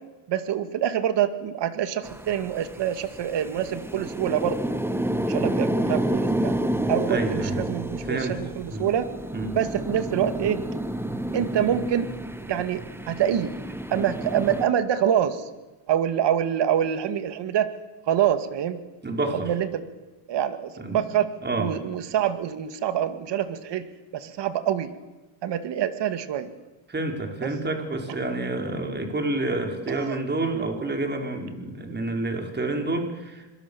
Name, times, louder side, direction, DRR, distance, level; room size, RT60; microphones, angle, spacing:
voice 1, 0.3-4.6 5.2-6.5 6.9-9.1 9.6-10.6 11.3-12.1 12.5-13.5 13.9-15.5 15.9-17.7 18.1-18.8 19.3-19.8 20.3-21.3 21.6-23.9 24.1-24.9 25.4-26.5 27.4-27.5 29.9-30.2, right 10 dB, 60° right, 11 dB, 2.3 m, -26 dB
sound 1, 2.0-14.7, right 1 dB, 5° right, 1.7 m, -29 dB
voice 2, 7.1-7.6 8.0-8.4 8.6-8.9 9.3-9.6 19.0-19.5 20.8-21.0 21.4-21.7 26.9-33.6, right 2 dB, 20° right, 4 dB, 4.9 m, -29 dB
26.5 x 22.0 x 7.2 m, 1.1 s
cardioid pair, 90°, 46 cm